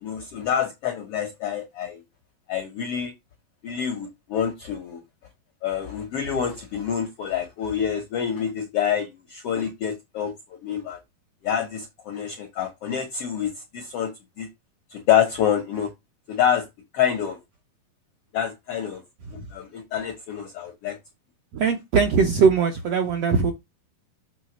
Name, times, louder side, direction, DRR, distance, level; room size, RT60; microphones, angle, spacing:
voice 1, 0.0-2.0 2.5-3.1 3.6-5.0 5.6-11.0 11.4-14.1 14.4-14.5 14.9-15.9 16.3-16.7 16.9-17.4 18.3-19.0 19.5-21.0, left 8 dB, 85° left, 1.3 m, -27 dB
voice 2, 21.5-23.5, right 5 dB, 75° right, 1.5 m, -20 dB
7.5 x 3.2 x 6.0 m
omnidirectional pair, 4.1 m